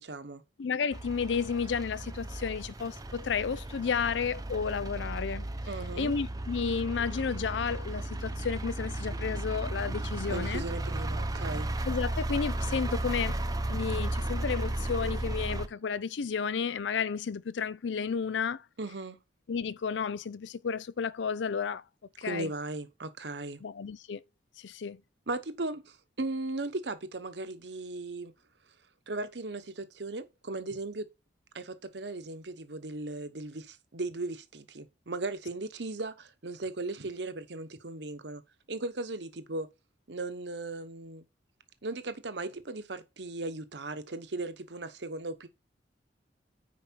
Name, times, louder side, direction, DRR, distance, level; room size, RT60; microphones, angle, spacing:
voice 1, 0.0-0.4 5.7-6.1 10.3-11.7 18.8-19.2 22.2-23.6 25.3-28.3 29.1-31.1 31.5-38.4 38.7-39.7 40.1-41.2 41.8-45.5, right 2 dB, 70° right, 1.0 m, -37 dB
voice 2, 0.6-5.4 6.0-10.6 11.8-13.4 13.7-18.6 19.5-21.8 22.2-22.5 23.6-24.2 24.6-25.0, left 6 dB, 85° left, 0.5 m, -32 dB
sound 1, 0.9-15.7, right 1 dB, 20° right, 0.7 m, -34 dB
9.5 x 4.8 x 4.5 m
head